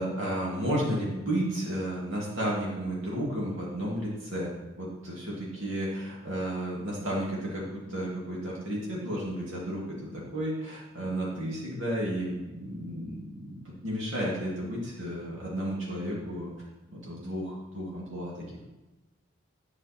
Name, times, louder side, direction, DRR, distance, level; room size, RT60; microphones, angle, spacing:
voice 1, 0.0-9.9 10.1-16.5 16.9-18.4, right 1 dB, 65° right, -5 dB, 2.5 m, -32 dB
11.0 x 6.4 x 4.4 m, 1.1 s
head